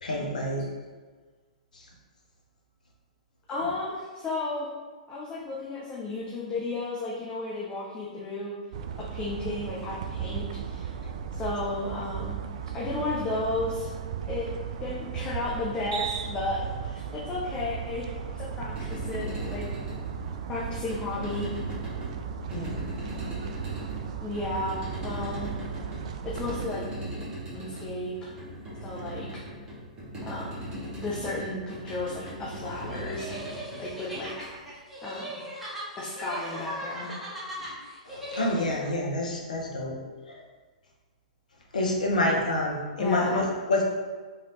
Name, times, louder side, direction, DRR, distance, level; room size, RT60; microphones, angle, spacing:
voice 1, 0.0-0.6 1.7-1.8 22.5-22.9 37.6-37.7 38.0-40.0 40.3-40.4 41.7-43.8, left 1 dB, 75° left, -1 dB, 1.0 m, -28 dB
voice 2, 3.5-4.7 5.1-8.5 9.0-10.9 11.4-12.4 12.7-13.9 14.3-14.5 14.8-19.7 20.5-21.5 24.2-25.5 26.2-26.9 27.5-28.3 28.8-29.3 30.2-30.7 31.0-33.3 33.8-34.5 35.0-35.3 36.0-37.1 43.0-43.4, left 2 dB, 25° left, -5 dB, 0.8 m, -33 dB
sound 1, 8.7-26.7, right 7 dB, 55° right, 0.4 m, -36 dB
sound 2, 18.5-34.7, right 1 dB, 20° right, 1.4 m, -39 dB
sound 3, 32.9-38.9, equal, ahead, 1.5 m, -39 dB
4.8 x 3.3 x 3.1 m, 1.4 s
figure-of-eight pair, 110°, 4 cm